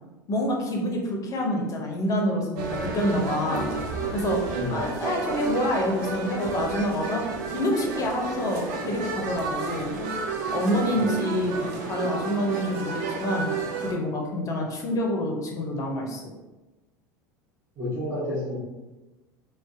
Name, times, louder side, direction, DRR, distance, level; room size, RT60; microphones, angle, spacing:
voice 1, 0.3-3.7 4.1-4.4 4.7-7.2 7.5-10.0 10.5-16.3, left 1 dB, 30° left, 0 dB, 0.6 m, -27 dB
sound 1, 2.6-13.9, right 4 dB, 60° right, 0.4 m, -31 dB
voice 2, 17.8-18.6, left 1 dB, 30° right, -11 dB, 1.0 m, -30 dB
2.4 x 2.1 x 2.5 m, 1.1 s
figure-of-eight pair, 75°, 11 cm